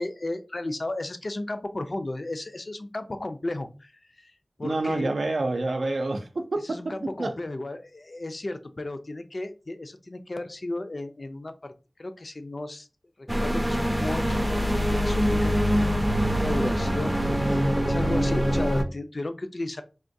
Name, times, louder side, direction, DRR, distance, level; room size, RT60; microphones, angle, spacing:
voice 1, 0.0-4.3 4.6-5.1 6.6-11.7 12.0-12.9 13.2-15.9 16.2-17.1 17.4-19.8, left 2 dB, 55° left, 0.4 m, -34 dB
voice 2, 4.6-6.8 7.2-7.4, right 2 dB, 85° right, 0.4 m, -27 dB
sound 1, 13.3-18.8, equal, 10° right, 0.4 m, -24 dB
3.5 x 2.2 x 2.6 m
wide cardioid pair, 65°, 0 cm